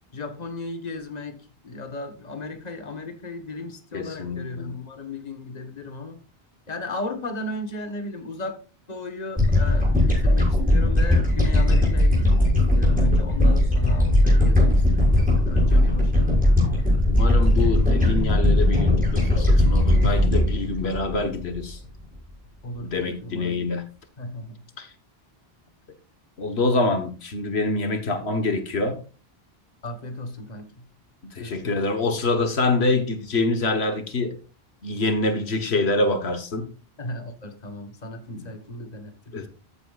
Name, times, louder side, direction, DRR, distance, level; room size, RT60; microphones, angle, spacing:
voice 1, 0.1-6.2 6.7-8.6 8.9-16.4 22.6-23.7 24.2-24.6 29.8-30.9 31.4-31.9 37.0-39.5, left 2 dB, 40° left, 6 dB, 1.4 m, -35 dB
voice 2, 3.9-4.7 11.7-12.0 15.7-15.8 17.1-21.8 22.8-23.8 24.8-24.9 26.4-29.0 31.3-34.3 34.8-36.7 38.3-38.4 39.3-39.5, left 2 dB, 90° left, 7 dB, 1.6 m, -25 dB
sound 1, 9.4-21.8, left 1 dB, 10° right, 6.1 m, -19 dB
14.0 x 8.8 x 2.4 m, 0.35 s
omnidirectional pair, 1.0 m